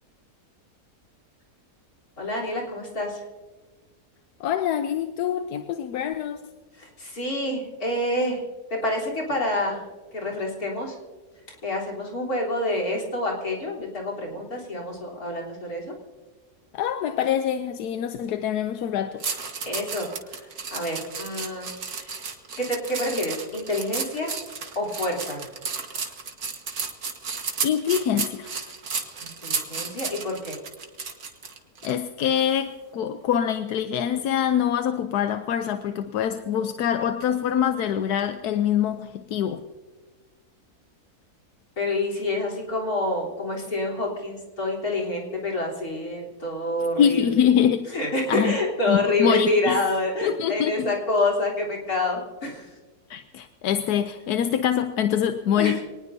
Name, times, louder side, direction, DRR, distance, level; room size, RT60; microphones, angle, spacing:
voice 1, 2.2-3.2 6.7-8.4 8.7-9.8 10.1-11.0 11.5-15.9 19.7-22.3 22.6-24.3 24.8-25.5 29.2-30.6 41.8-47.5 47.9-52.8 55.6-55.8, left 1 dB, 70° left, -2 dB, 4.1 m, -27 dB
voice 2, 4.4-6.4 16.7-19.2 27.6-28.8 31.8-39.6 47.0-47.9 48.3-48.6 48.9-49.8 50.2-50.9 53.1-55.8, left 9 dB, 85° left, 8 dB, 1.3 m, -24 dB
sound 1, 19.2-31.9 32.4-32.6, right 5 dB, 70° right, 2.0 m, -33 dB
24.5 x 19.0 x 2.7 m, 1.3 s
omnidirectional pair, 1.6 m